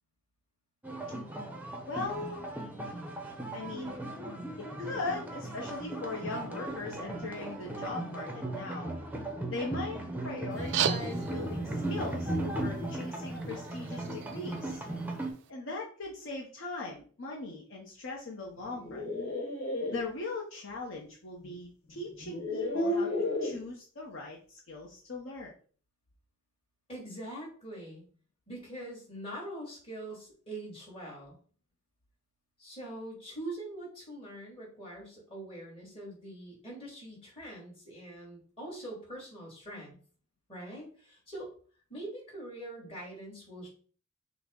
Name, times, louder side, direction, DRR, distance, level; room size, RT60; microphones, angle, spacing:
sound 1, 0.8-15.3, right 1 dB, 10° right, 0.5 m, -37 dB
voice 1, 1.8-2.4 3.5-4.0 4.6-8.9 9.5-14.8 15.5-19.2 19.9-23.1 23.4-25.5, left 3 dB, 60° left, -1 dB, 0.7 m, -40 dB
sound 2, 10.5-15.5, right 9 dB, 60° right, 0.3 m, -38 dB
sound 3, 18.6-20.0 21.4-21.5 22.2-23.6, left 1 dB, 80° left, 1.1 m, -32 dB
voice 2, 26.9-28.1 28.5-31.4 32.6-40.0 40.5-41.5 41.9-43.7, right 1 dB, 25° left, -3 dB, 1.8 m, -43 dB
5.9 x 2.0 x 3.6 m, 0.43 s
head